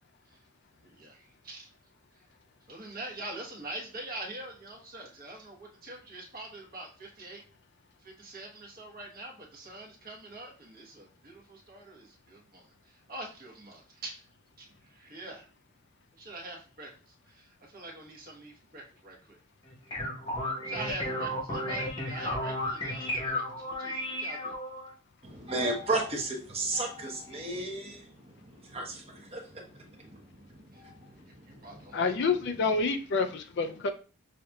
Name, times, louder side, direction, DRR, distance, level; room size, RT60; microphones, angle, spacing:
voice 1, 0.8-1.7 2.1-2.2 2.7-7.4 8.0-14.2 14.6-15.5 16.2-19.4 20.6-24.5 30.0-30.3 30.7-30.8 31.1-31.2 31.4-32.3, right 2 dB, 45° right, 1.2 m, -44 dB
sound 1, 19.6-24.9, left 1 dB, 25° left, 0.9 m, -33 dB
voice 2, 25.2-31.9, right 2 dB, 30° right, 0.9 m, -35 dB
voice 3, 31.9-33.9, left 4 dB, 60° left, 0.4 m, -28 dB
6.5 x 2.7 x 2.3 m
head